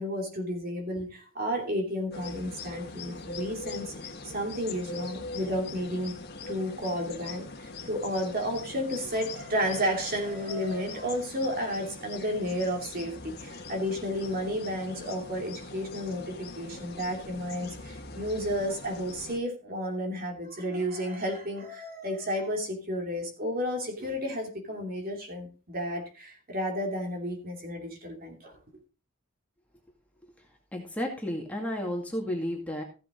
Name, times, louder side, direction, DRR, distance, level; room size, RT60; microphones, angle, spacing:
voice 1, 0.0-6.1 6.5-28.6, equal, 40° right, 2 dB, 2.8 m, -32 dB
sound 1, 2.1-19.4, left 3 dB, 45° left, 1.7 m, -42 dB
voice 2, 30.7-32.8, equal, 5° left, 0 dB, 2.2 m, -32 dB
15.0 x 7.7 x 3.8 m, 0.33 s
head